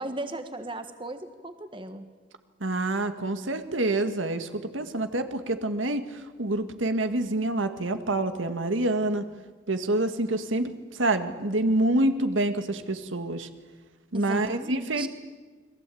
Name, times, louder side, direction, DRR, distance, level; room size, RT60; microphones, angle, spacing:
voice 1, 0.0-2.1 14.1-15.1, right 1 dB, 25° right, 8 dB, 1.5 m, -36 dB
voice 2, 2.6-9.2 9.7-13.5 14.1-15.1, right 2 dB, 85° right, 8 dB, 1.8 m, -27 dB
29.5 x 22.0 x 8.5 m, 1.4 s
head